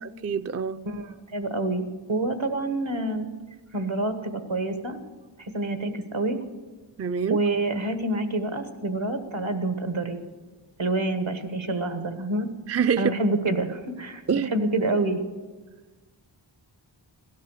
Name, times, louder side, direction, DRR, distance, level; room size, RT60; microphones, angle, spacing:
voice 1, 0.2-0.9 7.0-7.4 12.7-13.1 14.3-14.5, right 6 dB, 35° right, 0.4 m, -25 dB
voice 2, 0.8-1.8 2.1-3.3 3.7-5.0 5.4-6.4 7.3-10.2 10.8-12.5 13.0-14.2 14.5-15.2, right 2 dB, 80° right, 1.5 m, -27 dB
17.0 x 12.5 x 6.5 m
wide cardioid pair, 45°, 46 cm